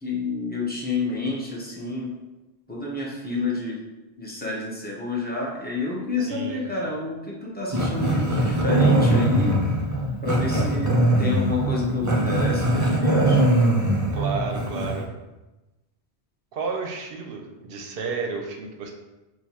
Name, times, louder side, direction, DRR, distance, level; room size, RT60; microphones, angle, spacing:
voice 1, 0.0-2.1 2.7-3.8 4.2-9.5 10.2-10.9 11.2-13.4, left 3 dB, 10° left, -5 dB, 0.7 m, -29 dB
voice 2, 6.3-6.6 14.1-15.1 16.5-18.9, right 4 dB, 65° right, 3 dB, 0.7 m, -31 dB
Growling, 7.7-15.0, right 1 dB, 25° right, 0.4 m, -21 dB
6.3 x 2.3 x 2.8 m, 1.1 s
omnidirectional pair, 1.1 m